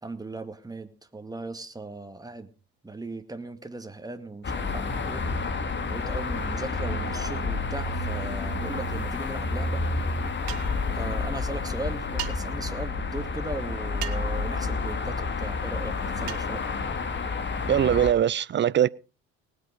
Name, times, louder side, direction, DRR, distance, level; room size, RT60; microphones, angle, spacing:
voice 1, 0.0-2.5 2.8-5.2 5.8-9.9 10.9-16.7, right 2 dB, 10° right, 2.2 m, -38 dB
sound 1, 4.4-18.1, left 3 dB, 35° left, 2.3 m, -30 dB
sound 2, 10.5-10.8 12.2-12.3 14.0-14.4 16.3-16.5, right 13 dB, 85° right, 1.2 m, -35 dB
voice 2, 17.7-18.9, right 10 dB, 35° right, 0.6 m, -21 dB
19.5 x 8.2 x 5.1 m
hypercardioid pair, 65°, 32 cm